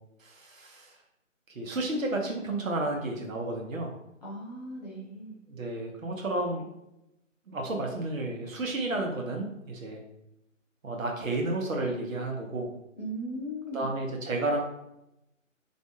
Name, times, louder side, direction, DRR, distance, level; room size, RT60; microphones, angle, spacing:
voice 1, 0.2-0.9 1.5-3.9 5.5-6.7 7.5-10.0 10.8-12.7 13.7-14.6, right 2 dB, 80° right, 1 dB, 0.8 m, -31 dB
voice 2, 4.2-5.4 13.0-13.9, equal, 30° left, -6 dB, 0.8 m, -37 dB
2.5 x 2.2 x 2.7 m, 0.85 s
figure-of-eight pair, 160°, 40 cm